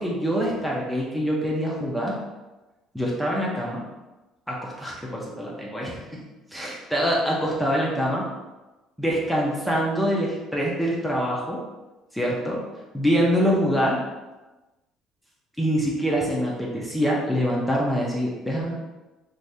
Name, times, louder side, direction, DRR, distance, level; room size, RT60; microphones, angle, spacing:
voice 1, 0.0-2.2 2.9-3.8 4.5-6.2 6.5-8.3 9.0-11.6 12.1-12.6 12.9-14.0 15.6-18.7, equal, ahead, -4 dB, 0.6 m, -25 dB
2.7 x 2.6 x 3.3 m, 1.1 s
cardioid pair, 135°, 0 cm